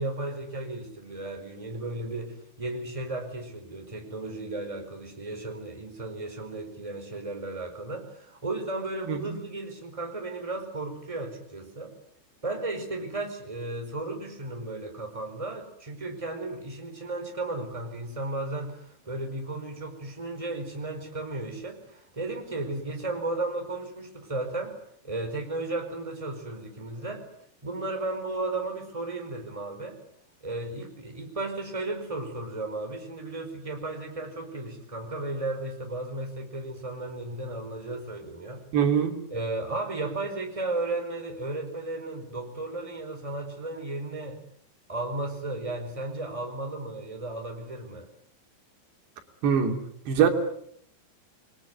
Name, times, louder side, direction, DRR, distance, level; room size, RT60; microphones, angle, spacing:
voice 1, 0.0-11.9 12.4-24.8 25.0-27.2 27.6-30.0 30.4-38.6 39.3-44.4 44.9-48.1, right 2 dB, 10° right, 4 dB, 4.4 m, -34 dB
voice 2, 38.7-39.2 49.4-49.8 50.1-50.3, right 8 dB, 85° right, 5 dB, 5.1 m, -22 dB
28.0 x 22.0 x 9.5 m, 0.68 s
omnidirectional pair, 4.8 m